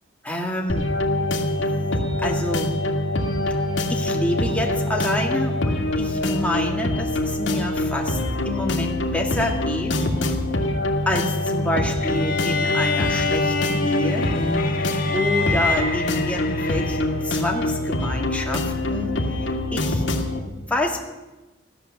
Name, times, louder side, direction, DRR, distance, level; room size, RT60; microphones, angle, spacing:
voice 1, 0.2-0.9 1.3-1.9 2.2-2.8 3.9-8.2 8.5-9.9 11.1-14.3 15.1-20.1 20.4-21.0, left 1 dB, 5° left, 0 dB, 1.9 m, -28 dB
sound 1, 0.7-20.4, left 1 dB, 75° left, 2.0 m, -24 dB
sound 2, 12.0-17.3, left 4 dB, 45° left, 1.5 m, -27 dB
15.0 x 12.0 x 7.0 m, 1.1 s
head